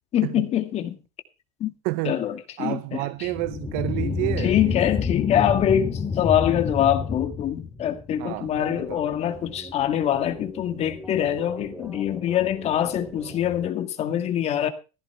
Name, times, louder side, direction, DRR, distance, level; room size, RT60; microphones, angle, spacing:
voice 1, 0.1-1.0 1.6-1.7 2.0-3.3 4.4-14.7, left 10 dB, 40° left, 1.9 m, -24 dB
voice 2, 1.8-2.2 2.6-4.8 8.2-8.5 8.8-9.1, right 21 dB, 60° right, 0.6 m, -29 dB
sound 1, 3.2-8.2, left 5 dB, 20° left, 2.7 m, -28 dB
sound 2, 8.4-13.7, right 1 dB, 10° right, 2.6 m, -42 dB
15.0 x 13.0 x 3.3 m
supercardioid pair, 110°, 16 cm